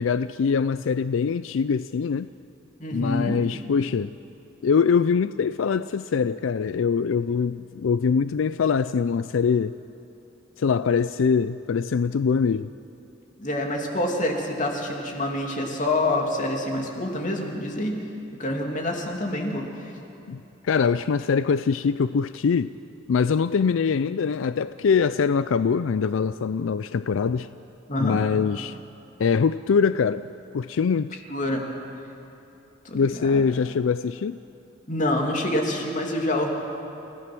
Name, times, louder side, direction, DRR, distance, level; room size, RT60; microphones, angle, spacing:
voice 1, 0.0-2.3 2.9-4.1 4.6-9.7 10.6-12.7 20.3-20.4 20.6-22.7 23.1-27.5 28.0-28.8 29.2-30.3 30.5-31.2 32.9-34.4, left 6 dB, 90° left, 13 dB, 0.4 m, -23 dB
voice 2, 2.8-3.4 13.4-18.0 18.4-19.9 27.9-28.2 31.3-31.6 32.8-33.4 34.9-36.5, left 1 dB, 40° left, 1 dB, 2.7 m, -27 dB
29.0 x 16.0 x 6.1 m, 2.9 s
head